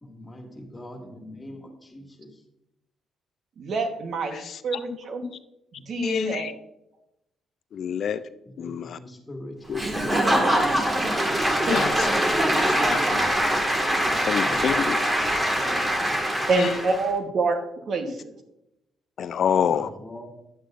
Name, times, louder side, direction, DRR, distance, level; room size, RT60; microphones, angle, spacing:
voice 1, 0.0-2.3 8.6-10.6 14.4-16.0 19.7-20.3, left 1 dB, 20° left, 1 dB, 2.0 m, -42 dB
voice 2, 3.6-5.2 5.8-6.5 11.6-11.8 12.5-13.2 16.5-18.4, right 4 dB, 60° right, 6 dB, 1.2 m, -28 dB
voice 3, 4.3-5.0 5.2-5.3 6.0-6.5 7.7-8.2 8.6-9.0 9.7-9.8 11.7-12.1 12.6-13.2 14.2-15.0 16.6-16.7 18.1-18.2 19.2-19.9, left 8 dB, 60° left, 13 dB, 0.3 m, -27 dB
Applause / Crowd, 9.7-17.1, right 1 dB, 20° right, 1.7 m, -23 dB
10.0 x 8.2 x 2.5 m, 0.85 s
cardioid pair, 90°, 0 cm